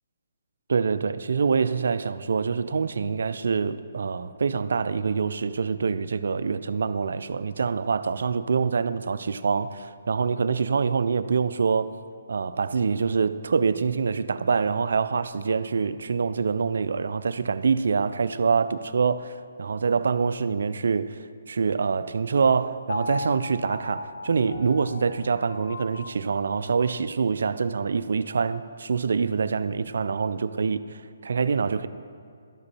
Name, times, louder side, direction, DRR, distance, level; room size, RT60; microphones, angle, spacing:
voice 1, 0.7-11.9 12.3-21.2 21.5-31.9, right 5 dB, 70° right, 0.3 m, -25 dB
Piano, 22.9-27.0 27.5-27.6, left 2 dB, 75° left, 1.0 m, -37 dB
12.0 x 5.1 x 4.2 m
figure-of-eight pair, 140°, 0 cm